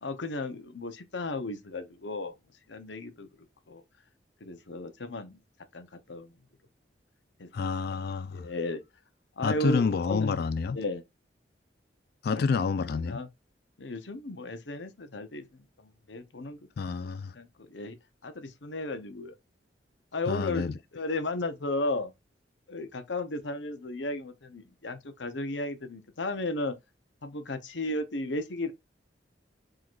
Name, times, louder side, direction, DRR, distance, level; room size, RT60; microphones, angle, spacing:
voice 1, 0.0-2.3 2.7-3.3 3.7-3.8 4.4-5.4 5.7-6.4 7.4-7.5 8.3-8.8 9.4-10.4 10.7-11.0 12.3-12.5 12.9-13.3 13.8-16.6 17.3-18.0 18.2-19.3 20.1-22.1 22.7-26.8 27.2-28.7, left 2 dB, 80° left, 0.9 m, -34 dB
voice 2, 7.5-8.5 9.4-10.8 12.2-13.2 16.8-17.3 20.3-20.7, left 5 dB, 55° left, 0.3 m, -28 dB
4.7 x 3.8 x 2.5 m
head